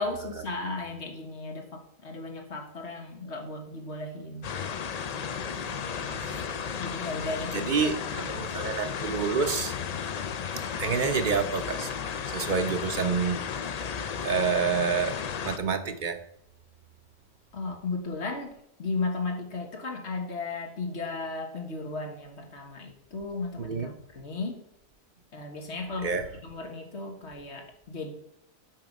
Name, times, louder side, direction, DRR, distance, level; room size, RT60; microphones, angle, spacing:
voice 1, 0.0-4.4 6.8-7.9 8.2-8.3 17.5-18.5 18.8-24.6 25.3-28.1, left 3 dB, 90° left, 3 dB, 1.7 m, -35 dB
sound 1, 4.4-15.6, left 7 dB, 50° left, 0.5 m, -34 dB
voice 2, 5.8-6.5 7.5-9.7 10.8-11.9 12.3-13.4 14.2-15.2 15.4-16.2 23.6-23.9 26.0-26.3, right 5 dB, 55° right, 9 dB, 0.7 m, -28 dB
7.4 x 5.7 x 5.2 m, 0.77 s
omnidirectional pair, 1.1 m